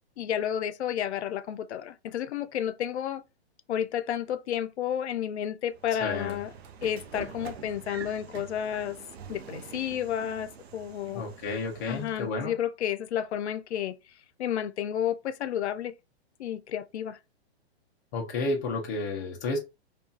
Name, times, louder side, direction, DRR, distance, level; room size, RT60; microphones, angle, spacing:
voice 1, 0.2-3.2 3.7-6.5 6.8-9.0 9.3-11.2 11.9-13.9 14.4-15.9 16.4-17.2, left 10 dB, 85° left, 0.5 m, -31 dB
Train / Sliding door, 5.7-12.3, right 7 dB, 70° right, 0.6 m, -45 dB
voice 2, 6.0-6.4 11.1-12.6 18.1-19.6, left 3 dB, 20° left, 0.4 m, -31 dB
2.7 x 2.3 x 2.3 m
hypercardioid pair, 150°, 33 cm